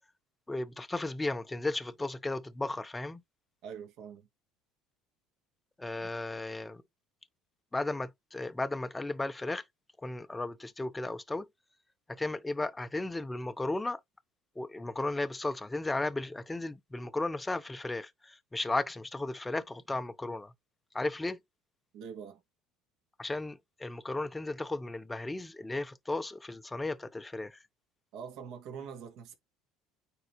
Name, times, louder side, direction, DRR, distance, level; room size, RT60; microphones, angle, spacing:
voice 1, 0.5-3.2 5.8-6.8 7.7-9.6 10.0-11.5 12.1-14.0 14.6-20.5 20.9-21.4 23.2-27.6, left 2 dB, 10° left, 0.7 m, -35 dB
voice 2, 3.6-4.3 6.0-6.1 21.9-22.4 28.1-29.3, right 7 dB, 60° right, 2.2 m, -44 dB
9.4 x 3.7 x 3.0 m
cardioid pair, 130°, 0 cm